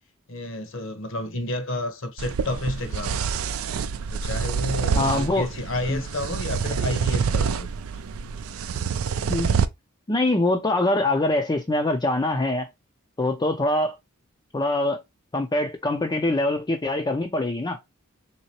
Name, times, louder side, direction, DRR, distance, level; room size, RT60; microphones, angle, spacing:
voice 1, 0.3-3.2 4.1-7.7, left 1 dB, 65° left, 1.0 m, -30 dB
sound 1, 2.2-9.7, right 6 dB, 75° right, 0.4 m, -27 dB
voice 2, 4.9-5.5 5.9-6.0 9.3-9.5 10.1-12.7 13.2-14.0 14.5-15.0 15.3-17.8, left 2 dB, 20° left, 0.5 m, -23 dB
3.7 x 2.9 x 2.8 m
head